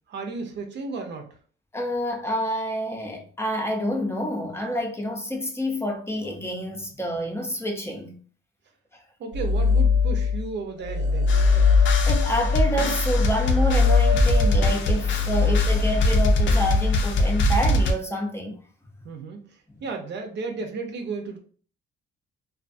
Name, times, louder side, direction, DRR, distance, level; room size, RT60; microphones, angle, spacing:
voice 1, 0.1-1.3 9.2-11.3 19.0-19.5 19.8-21.4, right 4 dB, 60° right, 0.7 m, -33 dB
voice 2, 1.7-8.2 12.1-18.6 19.7-19.8, left 1 dB, 10° left, 0.5 m, -28 dB
sound 1, 9.3-10.5 10.8-17.3, left 5 dB, 85° right, 1.1 m, -22 dB
sound 2, 11.3-17.9, left 1 dB, 65° left, 0.5 m, -22 dB
2.5 x 2.4 x 2.5 m
cardioid pair, 110°, 21 cm